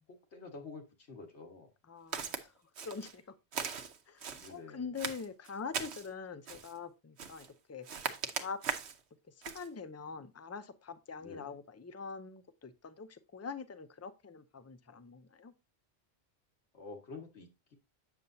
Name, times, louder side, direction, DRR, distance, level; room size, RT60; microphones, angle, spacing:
voice 1, 0.0-1.7 4.3-4.9 11.2-11.6 16.7-17.8, left 4 dB, 85° left, 1.9 m, -49 dB
voice 2, 1.9-2.5 2.8-3.2 4.1-7.9 8.4-8.6 9.5-15.5, left 5 dB, 20° left, 0.4 m, -44 dB
Walk footsteps, 2.1-2.4 2.8-3.2 3.5-4.5 5.0-6.1 6.5-6.8 7.2-7.5 7.8-9.0 9.4-9.7, right 6 dB, 75° right, 1.2 m, -39 dB
9.0 x 6.8 x 2.7 m
omnidirectional pair, 1.1 m